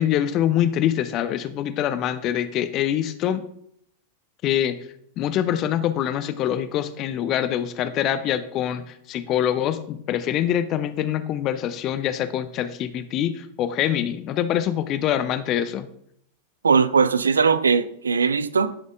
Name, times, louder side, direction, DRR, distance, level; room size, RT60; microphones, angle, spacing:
voice 1, 0.0-3.4 4.4-4.8 5.2-15.9, left 10 dB, 35° left, 0.6 m, -24 dB
voice 2, 16.6-18.7, right 5 dB, 75° right, 0.3 m, -19 dB
11.5 x 5.2 x 2.6 m
figure-of-eight pair, 90°, 0 cm